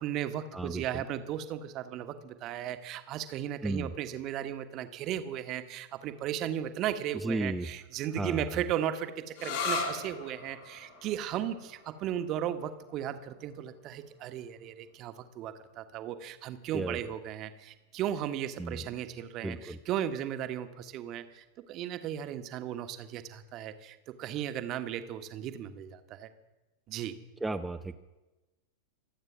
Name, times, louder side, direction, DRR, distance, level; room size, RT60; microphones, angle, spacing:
voice 1, 0.0-26.3 26.9-27.2, right 10 dB, 35° right, 10 dB, 1.3 m, -36 dB
voice 2, 0.5-1.0 3.6-3.9 7.2-7.7 8.2-8.4 16.7-17.0 18.6-18.8 19.4-19.8 27.4-28.0, right 2 dB, 5° right, 7 dB, 0.7 m, -33 dB
sound 1, 9.4-16.7, left 4 dB, 50° left, 3.8 m, -40 dB
25.5 x 8.9 x 6.1 m, 1.1 s
figure-of-eight pair, 90°, 0 cm